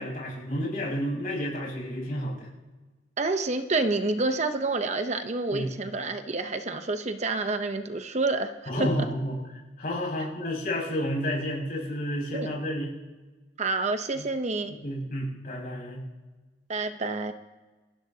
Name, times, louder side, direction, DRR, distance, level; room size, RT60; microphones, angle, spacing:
voice 1, 0.0-2.5 5.5-5.7 8.7-9.4 9.8-12.9 14.1-14.2 14.8-16.0, equal, 55° left, -4 dB, 6.4 m, -30 dB
voice 2, 3.2-8.7 12.3-12.5 13.6-14.8 16.7-17.3, right 3 dB, 40° right, 8 dB, 0.8 m, -28 dB
27.0 x 15.5 x 2.8 m, 1.2 s
head